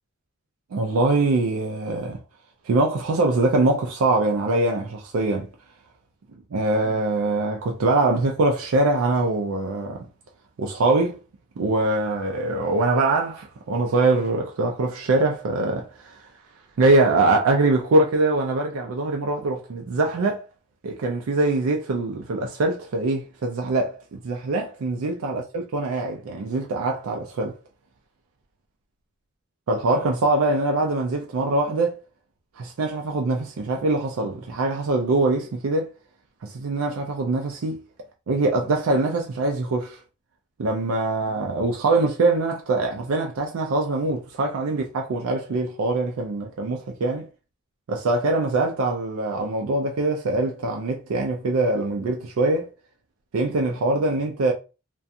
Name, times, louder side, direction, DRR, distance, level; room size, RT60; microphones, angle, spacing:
voice 1, 0.7-2.2 2.7-5.5 6.5-10.0 10.6-11.2 11.6-16.2 16.8-20.4 20.8-27.5 29.7-32.0 32.6-35.9 36.4-37.8 38.3-40.0 40.6-47.3 47.9-52.7 53.3-54.5, right 2 dB, 80° right, 0.4 m, -23 dB
2.4 x 2.2 x 2.6 m
head